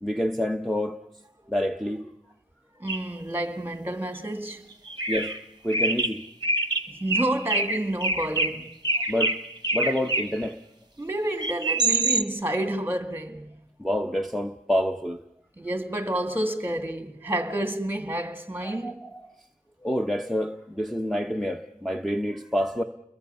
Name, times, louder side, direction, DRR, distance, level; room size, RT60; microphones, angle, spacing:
voice 1, 0.0-1.0 1.5-2.1 5.1-5.4 5.6-6.3 9.0-9.4 9.7-10.6 13.8-15.2 18.6-19.3 19.8-22.8, equal, ahead, 1.0 m, -28 dB
voice 2, 2.8-4.7 6.9-8.7 11.0-13.6 15.6-19.0, right 1 dB, 15° right, 2.0 m, -29 dB
sound 1, 2.9-3.1 4.3-4.4 4.9-5.4 5.7-10.5 11.4-12.2, right 2 dB, 30° right, 1.2 m, -26 dB
29.5 x 22.0 x 5.5 m
wide cardioid pair, 40°, 14 cm